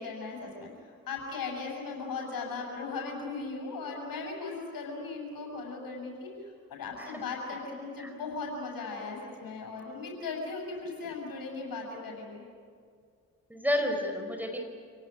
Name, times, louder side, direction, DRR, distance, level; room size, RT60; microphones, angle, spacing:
voice 1, 0.0-12.4, left 4 dB, 60° left, 0 dB, 7.5 m, -38 dB
voice 2, 13.5-14.6, left 1 dB, 5° right, 3 dB, 5.0 m, -31 dB
28.0 x 18.0 x 9.7 m, 2.1 s
hypercardioid pair, 40°, 39 cm